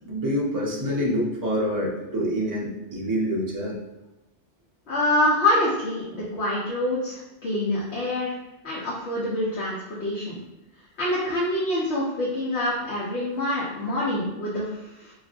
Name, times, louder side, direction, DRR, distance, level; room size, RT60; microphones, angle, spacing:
voice 1, 0.0-3.8, equal, 20° right, -4 dB, 0.6 m, -26 dB
voice 2, 4.9-8.3 8.6-10.4 11.0-15.1, left 1 dB, 70° left, -7 dB, 1.0 m, -26 dB
4.8 x 2.6 x 2.4 m, 0.97 s
omnidirectional pair, 1.2 m